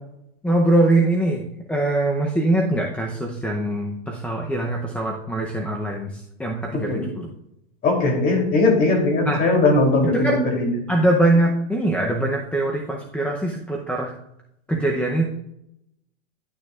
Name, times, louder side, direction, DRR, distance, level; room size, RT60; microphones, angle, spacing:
voice 1, 0.4-1.4 1.7-7.3 9.3-9.4 10.1-10.4 10.9-14.1 14.7-15.3, right 1 dB, 5° left, 0 dB, 0.7 m, -22 dB
voice 2, 6.7-7.0 7.8-10.7, left 2 dB, 30° left, 1 dB, 3.1 m, -19 dB
11.0 x 9.3 x 2.4 m, 0.79 s
hypercardioid pair, 135°, 31 cm